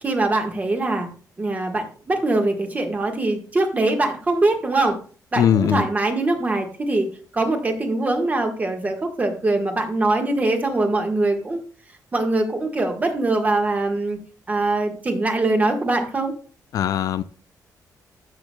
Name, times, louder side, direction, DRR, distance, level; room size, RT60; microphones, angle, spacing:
voice 1, 0.0-1.1 1.4-5.0 5.3-11.6 12.1-14.2 14.5-16.3, right 2 dB, 20° right, 1.4 m, -22 dB
voice 2, 5.4-5.8 16.7-17.2, left 9 dB, 60° left, 0.4 m, -20 dB
13.5 x 5.9 x 2.2 m
cardioid pair, 150°, 7 cm